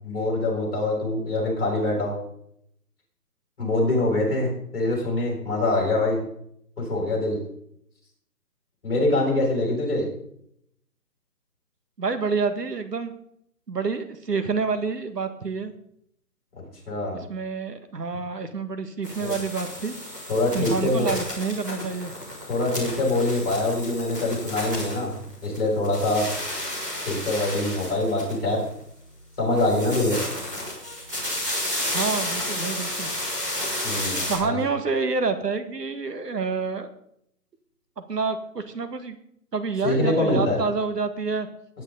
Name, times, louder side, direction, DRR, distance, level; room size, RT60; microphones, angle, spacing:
voice 1, 0.0-2.2 3.6-6.2 6.8-7.4 8.8-10.0 16.9-17.2 19.2-19.3 20.3-21.1 22.5-25.1 25.4-26.3 27.0-28.6 29.4-30.2 33.8-34.6 39.8-40.6, left 2 dB, 35° left, -2 dB, 6.6 m, -24 dB
voice 2, 12.0-13.1 13.7-15.7 17.1-19.9 20.5-22.1 31.9-33.1 34.3-36.9 38.0-39.2 39.5-41.5, right 4 dB, 75° right, 9 dB, 1.8 m, -28 dB
sound 1, 19.0-25.6 25.8-28.7 29.5-34.4, left 1 dB, 10° right, 2.6 m, -32 dB
18.0 x 9.8 x 3.9 m, 0.71 s
hypercardioid pair, 180°, 49 cm